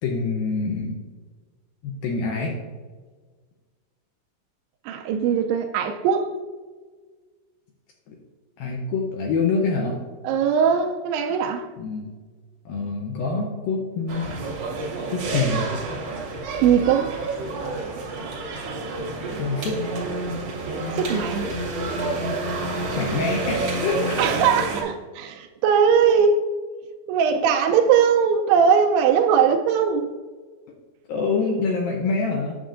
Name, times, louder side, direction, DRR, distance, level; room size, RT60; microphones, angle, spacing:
voice 1, 0.0-1.0 1.8-2.6 8.1-8.2 8.6-10.0 11.8-12.1 12.7-14.3 15.1-15.6 19.4-19.8 23.0-24.2 31.1-32.6, left 4 dB, 80° left, 2.1 m, -25 dB
voice 2, 4.9-6.4 10.2-11.7 16.6-17.2 21.0-21.5 24.2-26.4 27.1-30.1, right 7 dB, 80° right, 2.5 m, -20 dB
sound 1, 14.1-24.8, right 2 dB, 60° right, 1.6 m, -29 dB
8.9 x 6.9 x 2.5 m
omnidirectional pair, 4.9 m